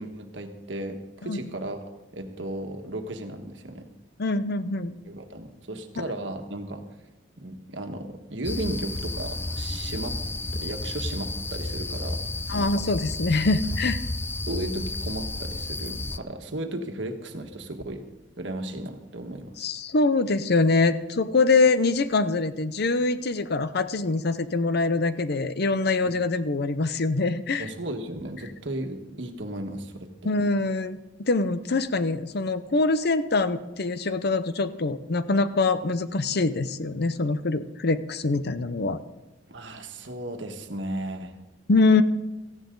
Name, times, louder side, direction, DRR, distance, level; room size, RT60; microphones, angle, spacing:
voice 1, 0.0-1.8 2.1-3.9 5.0-6.8 7.4-10.2 10.5-12.2 12.5-12.8 14.5-18.0 18.4-19.5 27.6-30.3 39.5-41.3, right 1 dB, 75° right, 5 dB, 1.6 m, -35 dB
voice 2, 4.2-4.9 12.5-14.0 19.6-27.7 30.2-39.0 41.7-42.0, left 3 dB, 60° left, 13 dB, 0.7 m, -24 dB
sound 1, 8.4-16.2, left 2 dB, 10° left, 0.4 m, -32 dB
17.5 x 14.5 x 3.9 m, 1.0 s
head